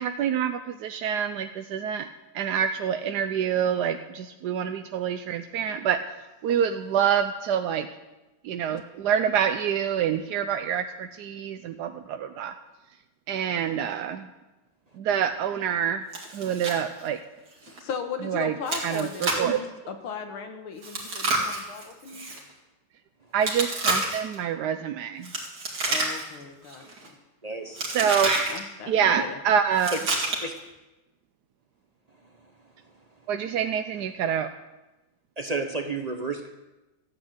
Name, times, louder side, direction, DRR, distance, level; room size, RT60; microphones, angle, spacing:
voice 1, 0.0-2.1 2.3-6.0 6.4-7.9 8.4-12.5 13.3-14.3 15.0-16.0 16.3-17.2 18.3-18.5 18.8-19.6 23.3-25.3 27.9-28.4 28.9-29.9 33.3-34.5, right 8 dB, 70° right, 7 dB, 1.0 m, -26 dB
Chewing mastication, 16.1-16.8 17.1-17.2 17.7-17.8 18.7-19.5 20.8-22.4 23.4-24.4 25.2-26.4 26.7-27.1 27.8-28.6 29.7-30.6, right 2 dB, 55° right, 3.1 m, -29 dB
voice 2, 17.6-22.4 25.9-27.2 28.5-29.4, left 5 dB, 90° left, 6 dB, 2.2 m, -37 dB
voice 3, 27.4-28.0 29.9-30.0 30.4-30.5 32.2-33.0 35.4-36.5, right 3 dB, 35° right, 4 dB, 0.6 m, -33 dB
14.0 x 8.7 x 8.0 m, 1.0 s
omnidirectional pair, 2.3 m